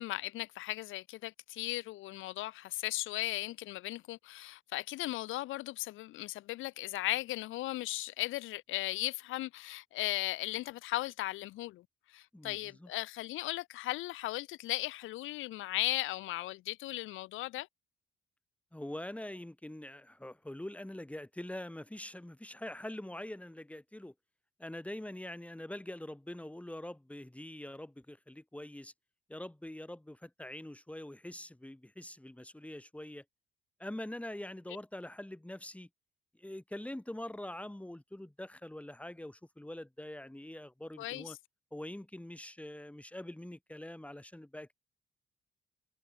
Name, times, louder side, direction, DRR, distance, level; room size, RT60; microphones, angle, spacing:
voice 1, 0.0-17.7 41.0-41.4, left 17 dB, 90° left, 0.9 m, -37 dB
voice 2, 12.3-12.9 18.7-24.1 24.6-28.9 29.3-33.2 33.8-35.9 36.4-41.4 41.7-44.7, left 1 dB, 5° left, 5.0 m, -44 dB
cardioid pair, 90°, 20 cm